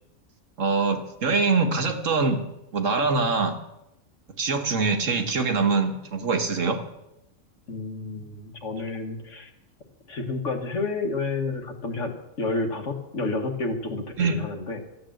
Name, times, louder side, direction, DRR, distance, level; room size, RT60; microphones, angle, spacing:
voice 1, 0.6-2.4 2.7-3.6 4.4-6.8 14.2-14.4, right 4 dB, 65° right, 5 dB, 1.8 m, -23 dB
voice 2, 7.7-9.5 10.1-12.1 12.4-14.8, left 3 dB, 65° left, 5 dB, 1.9 m, -30 dB
13.0 x 9.0 x 7.8 m, 0.88 s
omnidirectional pair, 1.4 m